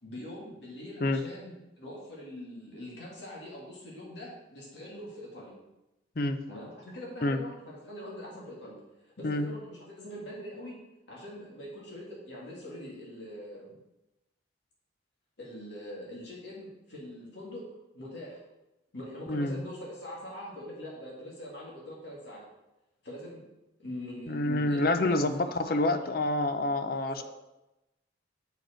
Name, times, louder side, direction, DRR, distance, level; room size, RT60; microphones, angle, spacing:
voice 1, 0.0-5.6 6.5-10.8 11.1-13.8 15.4-17.6 17.9-18.4 18.9-22.5 23.0-23.4 23.8-26.0 26.9-27.2, left 1 dB, 65° left, -4 dB, 2.3 m, -43 dB
voice 2, 19.3-19.6 24.3-27.2, left 2 dB, 50° left, 9 dB, 0.5 m, -28 dB
7.7 x 5.1 x 4.4 m, 0.96 s
head